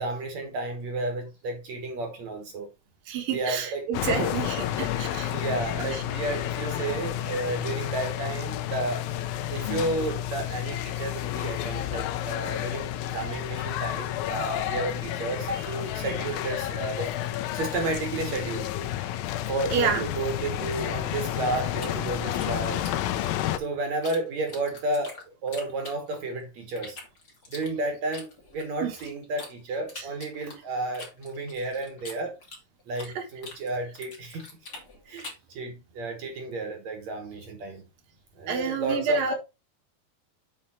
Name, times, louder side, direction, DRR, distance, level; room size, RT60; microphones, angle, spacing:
voice 1, 0.0-2.7 3.3-4.3 5.3-9.1 9.5-17.2 17.5-18.7 19.5-22.8 23.6-27.0 27.5-32.3 32.9-34.5 35.1-37.8 38.4-39.3, right 2 dB, 60° right, 2.3 m, -32 dB
voice 2, 3.1-5.3 5.9-6.0 15.5-16.0 19.7-20.0 28.8-29.0 30.0-30.1 33.2-33.3 38.5-39.3, right 5 dB, 80° right, 3.0 m, -29 dB
sound 1, 3.9-23.6, left 12 dB, 85° left, 2.5 m, -31 dB
sound 2, 21.8-24.2 24.5-26.4 26.8-29.5 29.9-33.2 33.4-35.5, left 3 dB, 30° left, 2.4 m, -44 dB
7.3 x 5.0 x 4.3 m
omnidirectional pair, 4.0 m